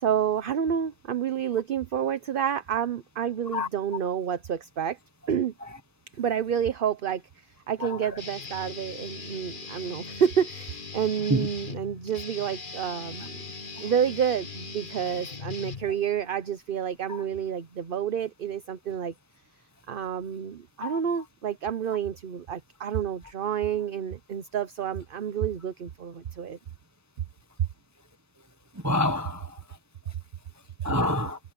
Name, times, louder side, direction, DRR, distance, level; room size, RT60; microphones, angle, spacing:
voice 1, 0.0-5.0 5.3-5.5 6.2-13.5 13.8-19.1 19.9-26.6, right 8 dB, 45° right, 0.8 m, -29 dB
Guitar, 8.2-16.2, left 4 dB, 35° left, 1.5 m, -40 dB
voice 2, 28.8-29.5 30.8-31.4, left 1 dB, 15° right, 0.7 m, -26 dB
omnidirectional pair, 1.5 m